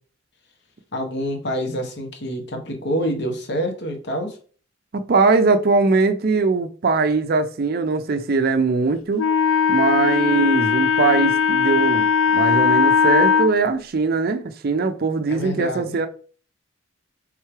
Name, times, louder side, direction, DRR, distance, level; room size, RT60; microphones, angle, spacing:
voice 1, 0.9-4.4 15.3-16.0, equal, 55° left, 1.1 m, -27 dB
voice 2, 4.9-9.3 9.7-12.1 12.3-16.1, right 4 dB, 50° right, 0.4 m, -20 dB
Wind instrument woodwind instrument, 9.2-13.5, left 6 dB, 85° left, 0.3 m, -18 dB
3.6 x 3.2 x 4.5 m
head